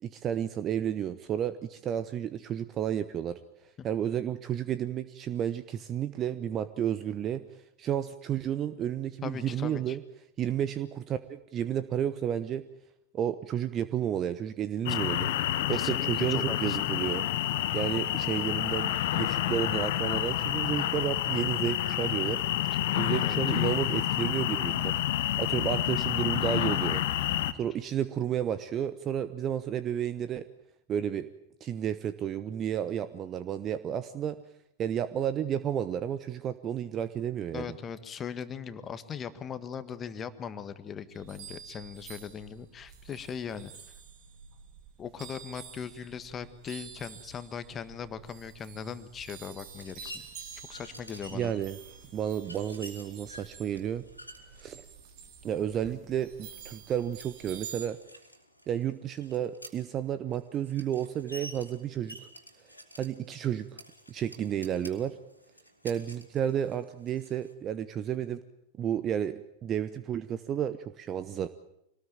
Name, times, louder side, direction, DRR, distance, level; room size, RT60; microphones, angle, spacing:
voice 1, 0.0-3.4 3.8-7.4 7.8-10.0 10.4-12.6 13.1-15.3 15.7-17.3 17.7-22.4 22.7-25.0 25.4-27.0 27.6-30.5 30.9-31.3 31.6-34.4 34.8-37.8 51.3-51.8 52.1-54.0 54.6-54.8 55.4-58.0 58.7-62.2 63.0-63.6 64.1-65.2 65.8-68.4 68.8-71.5, right 9 dB, 30° right, 13 dB, 1.0 m, -31 dB
voice 2, 9.2-10.0 14.9-15.0 15.7-16.9 23.2-23.3 37.5-43.7 45.0-50.1 50.7-51.6 55.5-55.6 55.9-56.0, left 7 dB, 25° left, 12 dB, 1.6 m, -39 dB
sound 1, 14.9-27.5, left 12 dB, 55° left, 1.3 m, -29 dB
sound 2, 41.1-57.9, right 7 dB, 45° right, 2.8 m, -49 dB
sound 3, 49.6-67.5, equal, 90° left, 3.1 m, -51 dB
25.5 x 19.0 x 9.0 m, 0.81 s
figure-of-eight pair, 90°, 0 cm